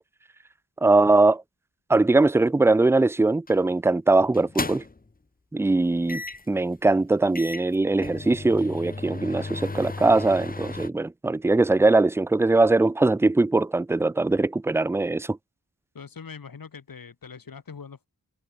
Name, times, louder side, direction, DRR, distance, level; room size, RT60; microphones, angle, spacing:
voice 1, 0.8-1.4 1.9-4.8 5.5-15.4, right 2 dB, 5° right, 0.4 m, -21 dB
sound 1, 3.5-3.7 4.3-5.1 6.1-6.5 7.0-7.1 7.3-10.9, left 3 dB, 25° left, 1.1 m, -35 dB
voice 2, 15.9-18.1, left 6 dB, 70° left, 2.5 m, -42 dB
cardioid pair, 55°, 36 cm